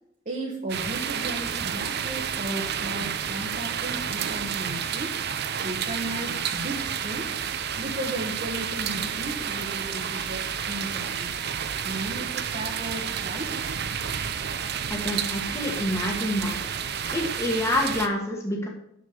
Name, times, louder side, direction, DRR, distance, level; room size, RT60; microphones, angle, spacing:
voice 1, 0.2-5.2 5.6-7.4 7.8-11.3 11.8-13.5, right 1 dB, 40° right, -2 dB, 1.2 m, -35 dB
sound 1, 0.7-18.1, right 8 dB, 55° right, 0.6 m, -30 dB
voice 2, 14.9-16.6 17.1-18.7, left 1 dB, 15° left, -1 dB, 1.5 m, -27 dB
6.5 x 6.5 x 6.6 m, 0.74 s
head